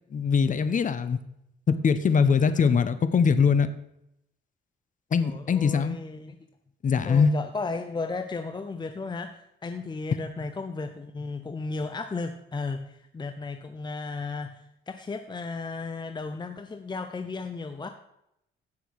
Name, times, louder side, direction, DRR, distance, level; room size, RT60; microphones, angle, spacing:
voice 1, 0.1-1.2 1.7-3.7 5.1-6.0 6.8-7.3, left 6 dB, 40° left, 12 dB, 1.0 m, -22 dB
voice 2, 5.2-6.4 7.0-17.9, left 3 dB, 20° left, 8 dB, 0.7 m, -35 dB
15.5 x 6.2 x 4.7 m, 0.80 s
cardioid pair, 90°, 20 cm